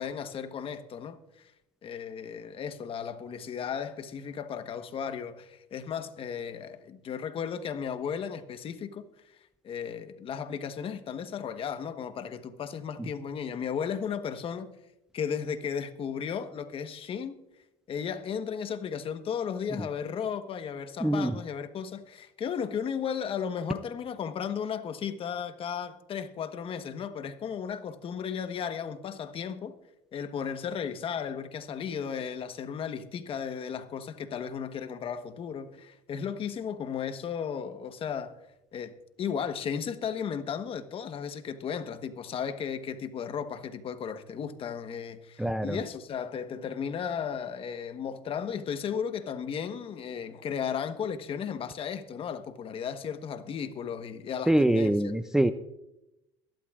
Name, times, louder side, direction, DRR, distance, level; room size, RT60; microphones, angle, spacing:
voice 1, 0.0-1.5 1.8-9.1 9.6-14.7 15.1-17.4 17.9-29.7 30.1-38.4 38.7-54.9, left 7 dB, 45° left, 1.2 m, -35 dB
voice 2, 21.0-21.3 45.4-45.8 54.5-55.5, right 1 dB, 5° right, 0.5 m, -24 dB
22.5 x 11.5 x 2.5 m
supercardioid pair, 95°, 14 cm